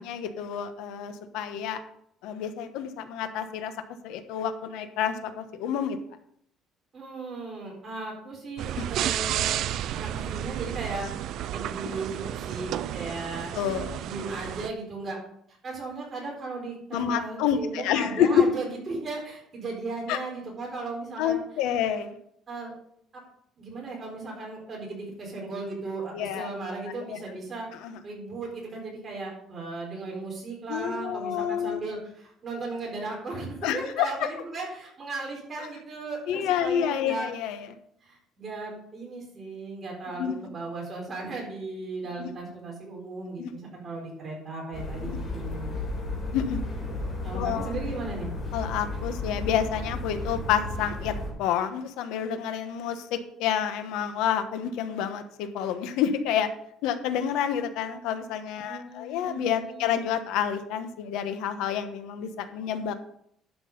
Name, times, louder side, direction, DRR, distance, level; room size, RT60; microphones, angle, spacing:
voice 1, 0.0-1.8 2.2-3.7 4.0-6.0 8.8-8.9 13.5-14.0 16.9-18.4 20.1-20.2 21.2-22.2 26.1-26.5 27.1-27.2 27.8-28.0 30.7-31.8 33.6-34.1 36.3-37.7 40.2-40.3 42.2-42.3 43.4-43.5 45.1-45.2 46.3-46.6 47.3-47.7 48.5-56.5 56.8-62.9, left 9 dB, 85° left, 9 dB, 1.1 m, -28 dB
voice 2, 6.9-9.6 9.9-11.1 11.5-13.5 14.0-15.2 15.6-21.4 22.5-22.7 23.1-23.2 23.6-27.7 28.0-37.3 38.0-45.8 47.2-48.3 58.7-60.0, right 3 dB, 25° right, -2 dB, 4.2 m, -36 dB
sound 1, 8.6-14.7, right 11 dB, 60° right, 0.4 m, -32 dB
sound 2, 44.7-51.3, left 2 dB, 25° left, 3.9 m, -33 dB
11.5 x 6.2 x 5.4 m, 0.70 s
cardioid pair, 155°, 0 cm